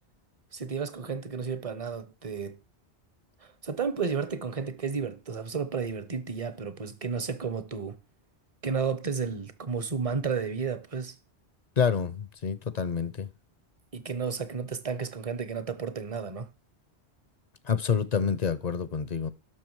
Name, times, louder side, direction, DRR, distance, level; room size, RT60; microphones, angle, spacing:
voice 1, 0.5-2.6 3.4-8.0 8.6-11.1 13.9-16.5, right 5 dB, 35° right, 0.7 m, -32 dB
voice 2, 11.8-13.3 17.6-19.3, left 6 dB, 45° left, 0.6 m, -28 dB
12.0 x 6.0 x 4.7 m
omnidirectional pair, 1.1 m